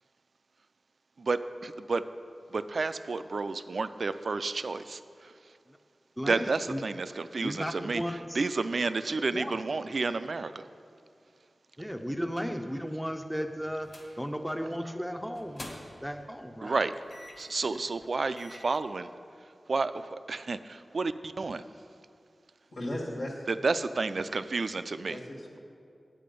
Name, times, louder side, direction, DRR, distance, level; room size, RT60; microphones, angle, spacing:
voice 1, 1.2-2.0 2.5-5.3 6.3-8.0 8.3-10.7 16.6-16.9 17.2-19.1 19.7-21.6 23.5-25.2, right 3 dB, 70° right, 12 dB, 0.3 m, -31 dB
voice 2, 6.2-6.8 7.4-8.4 9.3-9.5 11.8-13.9 14.2-15.7 16.0-16.8 17.6-17.8, equal, ahead, 5 dB, 0.5 m, -35 dB
sound 1, 13.8-14.2 14.5-14.7 15.3-16.1 17.1-17.5 18.0-18.1 18.4-18.8, left 1 dB, 55° left, 1.5 m, -46 dB
voice 3, 22.7-23.5 25.1-25.6, left 1 dB, 75° left, -3 dB, 1.7 m, -36 dB
8.6 x 8.2 x 5.2 m, 2.4 s
wide cardioid pair, 65°, 0 cm